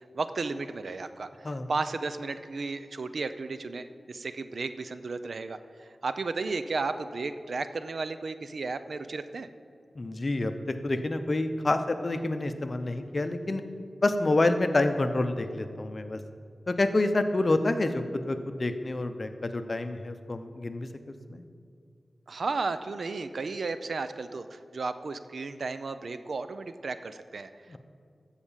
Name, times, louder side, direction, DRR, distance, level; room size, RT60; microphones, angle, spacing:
voice 1, 0.1-1.3 1.7-5.6 6.0-9.5 22.3-27.5, right 3 dB, 70° right, 11 dB, 0.5 m, -33 dB
voice 2, 10.0-13.6 14.0-16.2 16.7-20.9 21.3-21.4 27.7-27.8, left 2 dB, 45° left, 8 dB, 0.8 m, -28 dB
14.0 x 4.9 x 7.3 m, 2.4 s
wide cardioid pair, 65°, 0 cm